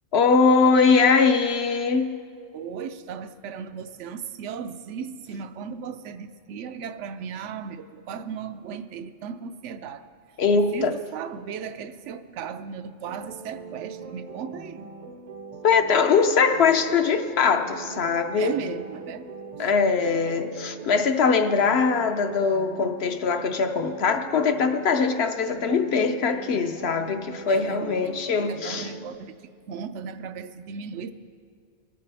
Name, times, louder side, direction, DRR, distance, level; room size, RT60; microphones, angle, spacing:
voice 1, 0.1-2.2 10.4-10.9 15.6-18.6 19.6-28.9, left 5 dB, 65° left, 0.9 m, -22 dB
voice 2, 2.5-10.1 10.5-14.9 18.4-19.3 19.6-19.7 27.5-28.1 28.4-29.4 29.7-31.1, right 7 dB, 75° right, 0.9 m, -36 dB
sound 1, 13.1-29.2, right 4 dB, 40° right, 0.6 m, -41 dB
22.5 x 9.0 x 3.4 m
omnidirectional pair, 1.2 m